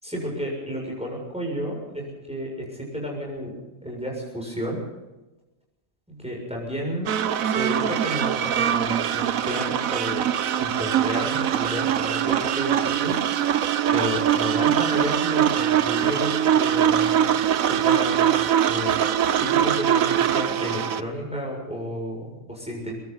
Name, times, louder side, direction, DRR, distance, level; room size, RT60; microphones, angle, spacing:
voice 1, 0.0-3.5 3.8-4.8 6.1-7.2 7.4-10.3 10.6-13.2 13.9-17.3 17.7-19.1 19.4-22.9, equal, 5° right, -2 dB, 7.1 m, -31 dB
sound 1, 7.1-21.0, right 9 dB, 85° right, 1.3 m, -22 dB
27.0 x 23.5 x 4.1 m, 1.1 s
omnidirectional pair, 1.4 m